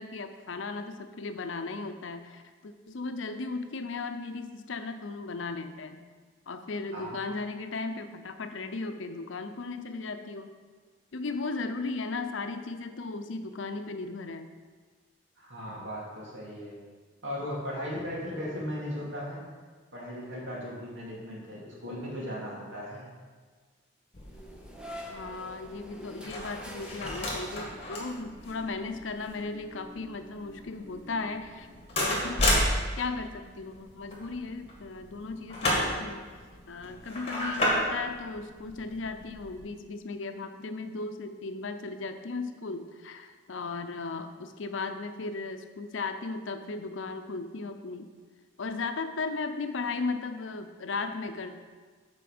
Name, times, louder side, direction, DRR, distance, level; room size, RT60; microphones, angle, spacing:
voice 1, 0.0-6.1 6.5-10.5 11.1-14.5 25.1-31.7 32.0-36.3 36.7-48.1 48.6-51.6, left 3 dB, 85° left, 8 dB, 0.6 m, -36 dB
voice 2, 15.4-16.8 17.2-19.4 19.9-23.1, equal, 75° right, -4 dB, 2.5 m, -37 dB
sound 1, 24.1-39.6, left 1 dB, 30° left, 1.9 m, -33 dB
sound 2, 24.2-28.2, equal, 5° right, 0.8 m, -45 dB
8.4 x 4.5 x 6.0 m, 1.5 s
head